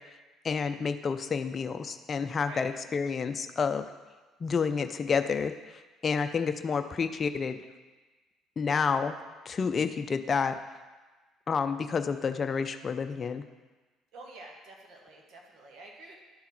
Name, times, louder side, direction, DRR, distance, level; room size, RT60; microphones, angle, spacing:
voice 1, 0.4-3.8 4.4-5.5 6.0-7.6 8.6-9.1 9.5-10.6 11.5-13.4, left 5 dB, 40° left, 8 dB, 0.4 m, -29 dB
voice 2, 14.1-16.1, right 2 dB, 70° right, 0 dB, 1.4 m, -48 dB
11.0 x 3.7 x 4.4 m, 1.3 s
supercardioid pair, 70°, 0 cm